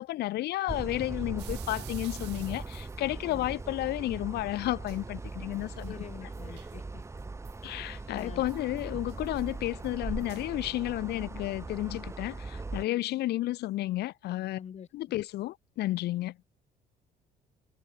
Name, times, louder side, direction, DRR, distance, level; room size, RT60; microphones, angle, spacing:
voice 1, 0.0-6.0 6.5-6.6 7.6-14.6 14.9-16.4, left 16 dB, 75° left, 1.5 m, -32 dB
sound 1, 0.7-12.9, right 3 dB, 15° right, 1.5 m, -40 dB
sound 2, 1.4-3.4 4.6-4.7 4.9-5.0 5.3-7.6 8.2-10.5, right 18 dB, 85° right, 3.2 m, -52 dB
voice 2, 5.9-7.0 8.1-8.4 14.5-14.9, left 7 dB, 40° left, 2.3 m, -45 dB
cardioid pair, 110°, 17 cm